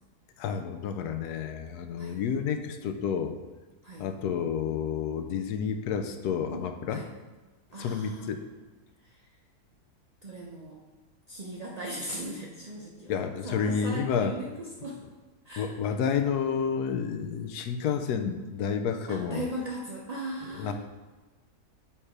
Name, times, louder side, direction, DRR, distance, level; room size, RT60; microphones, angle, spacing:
voice 1, 0.4-3.4 4.0-7.0 7.8-8.4 13.1-14.4 15.6-19.4 20.6-20.7, left 7 dB, 80° left, 7 dB, 1.1 m, -30 dB
voice 2, 7.7-8.3 9.0-9.2 10.2-10.8 11.3-13.1 13.4-15.0 15.4-15.7 19.1-20.7, right 1 dB, 55° right, -3 dB, 0.4 m, -38 dB
7.2 x 3.4 x 4.9 m, 1.2 s
omnidirectional pair, 1.7 m